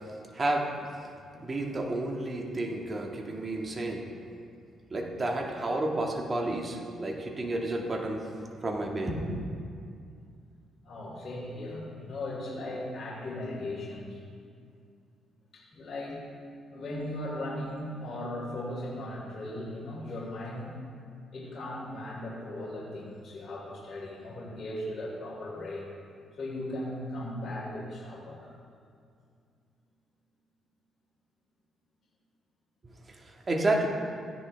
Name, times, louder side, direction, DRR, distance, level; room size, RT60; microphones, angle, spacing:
voice 1, 0.3-0.7 1.4-4.0 4.9-8.2 8.6-9.4 33.3-33.9, right 2 dB, 30° right, 1 dB, 1.6 m, -30 dB
voice 2, 10.8-14.2 15.5-16.2 16.7-20.7 21.3-25.9 26.3-28.5, left 1 dB, 45° left, -6 dB, 2.9 m, -37 dB
15.5 x 10.5 x 3.3 m, 2.3 s
cardioid pair, 90°, 0 cm